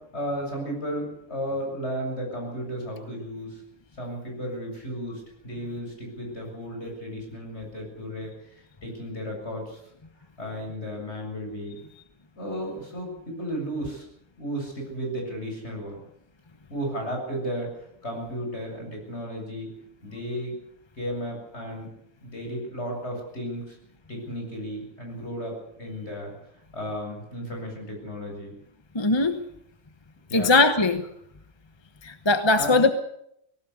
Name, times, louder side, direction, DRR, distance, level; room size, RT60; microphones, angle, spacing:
voice 1, 0.1-3.6 4.0-8.5 8.8-9.8 10.4-11.8 12.4-14.1 14.4-16.0 16.7-19.7 20.0-20.6 21.0-21.9 22.2-23.8 24.1-25.5 25.8-26.3 26.7-28.5 30.3-30.5 32.5-32.8, equal, 50° left, 1 dB, 7.8 m, -34 dB
voice 2, 28.9-29.4 30.3-31.0 32.0-32.9, left 3 dB, 20° left, 9 dB, 1.0 m, -20 dB
19.5 x 18.0 x 8.3 m, 0.73 s
omnidirectional pair, 1.4 m